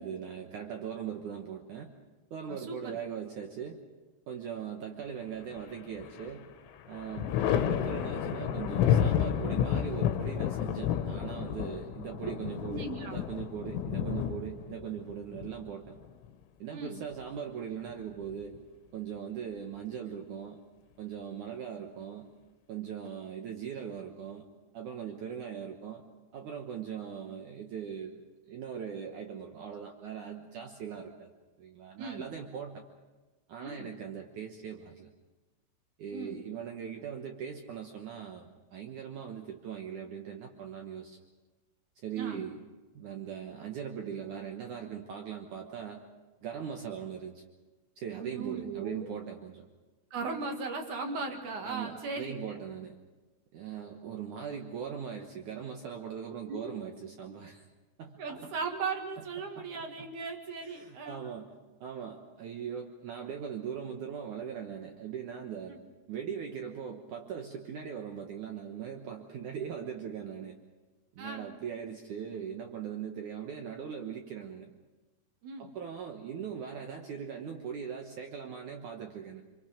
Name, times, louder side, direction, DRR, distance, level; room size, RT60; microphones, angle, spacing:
voice 1, 0.0-1.9 2.3-3.8 4.3-6.5 6.9-16.0 16.6-18.6 18.9-20.6 21.0-22.3 22.7-24.4 24.7-26.0 26.3-28.2 28.5-31.3 31.6-32.9 33.5-35.1 36.0-41.2 42.0-42.6 42.9-46.0 46.4-47.4 48.0-49.6 51.6-53.0 53.5-57.7 58.0-58.4 59.6-60.1 60.6-61.5 61.8-65.8 66.1-70.6 71.1-74.7 75.6-79.4, right 8 dB, 85° right, 3 dB, 1.7 m, -40 dB
voice 2, 2.5-3.0 12.6-13.2 16.7-17.0 32.0-32.3 33.6-33.9 36.1-36.4 42.2-42.5 48.1-49.1 50.1-52.6 56.5-56.8 58.2-61.2 65.7-65.8 71.2-71.5 75.4-75.7, right 4 dB, 55° right, 3 dB, 2.5 m, -38 dB
Thunder, 5.5-6.3 6.7-16.3 17.7-18.6, left 9 dB, 85° left, 3.5 m, -31 dB
27.0 x 24.5 x 5.1 m, 1.2 s
omnidirectional pair, 5.6 m